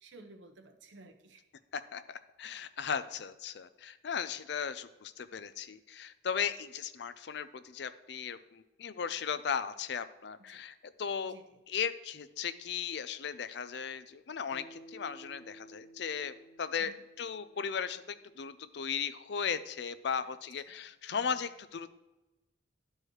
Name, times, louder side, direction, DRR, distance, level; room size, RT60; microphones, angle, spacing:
voice 1, 0.0-1.4 10.4-10.6 11.2-11.6 16.8-17.0 20.2-20.3 20.7-20.8 21.1-21.4, right 2 dB, 80° right, 7 dB, 0.9 m, -55 dB
voice 2, 1.7-11.3 11.7-22.0, left 7 dB, 60° left, 13 dB, 0.4 m, -37 dB
Bass guitar, 14.5-18.9, right 1 dB, 15° left, 1.4 m, -56 dB
12.0 x 4.7 x 3.1 m, 1.0 s
head